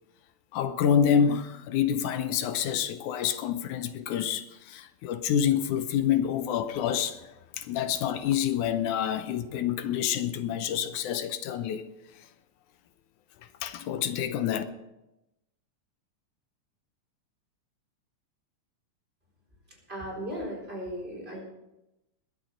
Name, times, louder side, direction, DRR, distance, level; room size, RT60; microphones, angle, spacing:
voice 1, 0.5-11.8 13.6-14.6, left 8 dB, 85° left, 2.3 m, -27 dB
voice 2, 19.9-21.4, equal, 20° right, 4.2 m, -36 dB
21.0 x 8.3 x 5.1 m
omnidirectional pair, 3.4 m